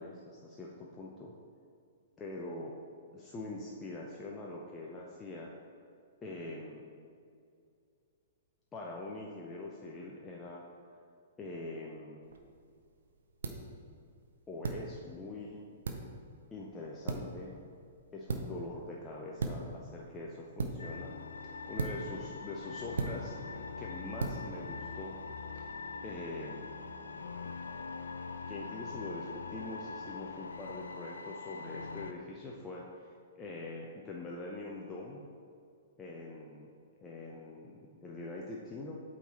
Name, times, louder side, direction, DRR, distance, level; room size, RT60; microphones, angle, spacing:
voice 1, 0.0-1.3 2.2-2.7 3.1-5.5 6.2-6.9 8.7-10.6 11.4-12.2 14.5-15.6 16.5-17.5 18.1-21.1 21.7-25.2 25.5-25.7 26.0-26.7 28.5-35.2 36.0-36.7 37.0-39.0, left 2 dB, 15° left, -3 dB, 0.6 m, -43 dB
sound 1, 12.2-25.7, right 3 dB, 65° right, 0.6 m, -41 dB
sound 2, 20.8-32.1, left 4 dB, 70° left, 0.4 m, -43 dB
8.2 x 3.9 x 4.2 m, 2.4 s
figure-of-eight pair, 110°, 0 cm